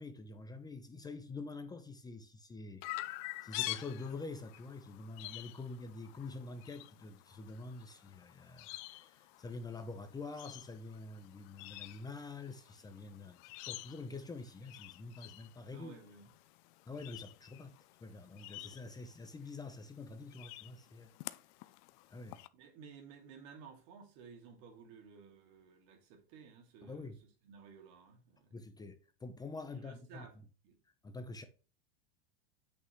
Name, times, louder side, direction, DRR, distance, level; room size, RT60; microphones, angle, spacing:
voice 1, 0.0-15.9 16.9-17.7 18.0-21.1 22.1-22.4 26.8-27.2 28.5-30.3 31.0-31.4, left 3 dB, 15° left, 0.9 m, -46 dB
Chirp tweet, 2.8-22.5, left 19 dB, 55° left, 0.6 m, -48 dB
voice 2, 15.7-16.3 22.5-28.6 29.7-30.3 30.6-30.8, right 6 dB, 55° right, 2.8 m, -55 dB
8.4 x 6.2 x 3.2 m
supercardioid pair, 125°, 29 cm